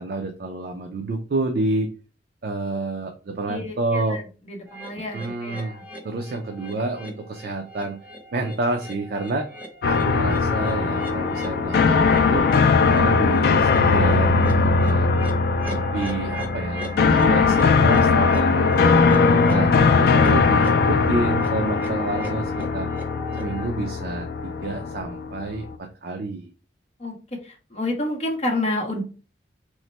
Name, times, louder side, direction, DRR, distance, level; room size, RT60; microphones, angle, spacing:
voice 1, 0.0-1.9 2.4-4.2 5.1-5.8 6.0-8.0 8.3-9.4 9.9-12.4 12.9-15.1 15.7-18.9 19.5-22.9 23.4-26.5, right 2 dB, 55° right, 3 dB, 0.4 m, -29 dB
voice 2, 3.5-5.8 20.4-20.9 27.0-27.2 27.4-29.0, left 1 dB, 35° left, 2 dB, 0.8 m, -30 dB
sound 1, 4.7-23.7, right 2 dB, 10° right, 0.6 m, -39 dB
sound 2, 9.8-25.7, left 4 dB, 55° left, 0.3 m, -20 dB
3.1 x 2.1 x 4.0 m, 0.35 s
head